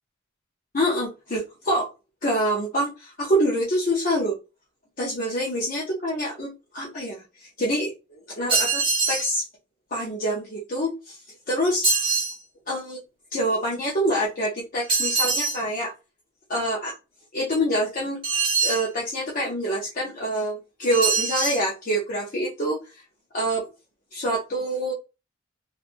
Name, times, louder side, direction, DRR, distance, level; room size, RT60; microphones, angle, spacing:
voice 1, 0.7-1.9 2.2-4.4 5.0-9.5 9.9-11.2 11.5-11.9 12.7-13.0 13.3-15.9 16.5-16.9 17.3-18.2 18.6-22.8 23.3-23.7 24.1-24.9, equal, 40° left, -4 dB, 0.6 m, -26 dB
sound 1, 8.5-9.3 11.8-12.4 14.9-15.6 18.2-18.9 20.9-21.6, right 4 dB, 25° right, 1.0 m, -23 dB
3.0 x 2.4 x 2.5 m, 0.29 s
head